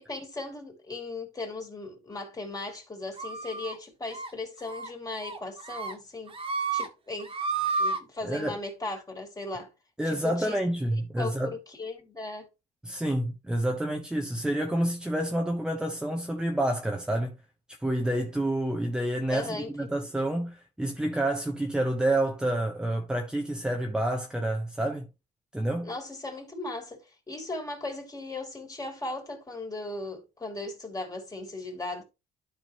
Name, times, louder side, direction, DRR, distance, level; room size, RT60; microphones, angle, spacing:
voice 1, 0.0-6.4 6.7-7.3 7.8-9.7 10.0-10.6 10.9-12.5 19.3-19.9 25.8-32.0, left 2 dB, 20° left, 3.1 m, -37 dB
sound 1, 3.2-3.8 4.1-4.3 4.6-4.9 5.2-5.9 6.3-6.9 7.2-8.0, right 4 dB, 30° right, 1.7 m, -31 dB
voice 2, 8.2-8.6 10.0-11.5 12.8-17.3 17.8-25.1 25.5-25.9, right 1 dB, 5° right, 1.0 m, -28 dB
12.0 x 5.1 x 3.0 m
cardioid pair, 110°, 17 cm